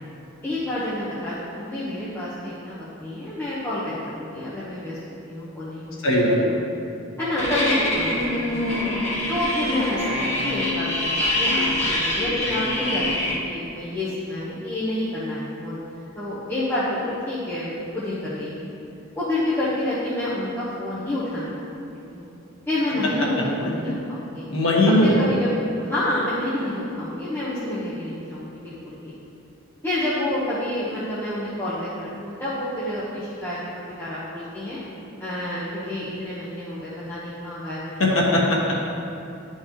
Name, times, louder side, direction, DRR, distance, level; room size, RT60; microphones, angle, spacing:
voice 1, 0.4-5.0 5.3-6.1 6.4-6.6 7.2-8.8 9.3-15.8 16.1-18.7 19.2-21.7 22.1-22.3 22.7-24.4 25.0-25.6 25.8-29.1 29.8-33.6 34.0-34.8 35.2-38.1 38.5-38.7, left 1 dB, 10° left, -12 dB, 1.1 m, -28 dB
voice 2, 6.0-6.4 23.4-23.9 24.5-25.2 38.0-38.7, left 1 dB, 90° left, -3 dB, 1.4 m, -20 dB
sound 1, 7.4-13.4, left 1 dB, 35° left, 1.5 m, -24 dB
11.5 x 4.5 x 3.0 m, 2.7 s
head